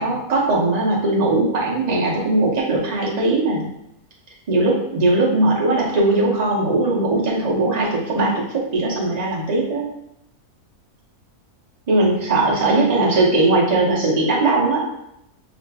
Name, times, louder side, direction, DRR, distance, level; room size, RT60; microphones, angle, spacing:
voice 1, 0.0-3.7 4.5-9.9 11.9-14.9, right 2 dB, 35° right, -4 dB, 0.7 m, -19 dB
5.0 x 2.5 x 2.2 m, 0.80 s
omnidirectional pair, 1.6 m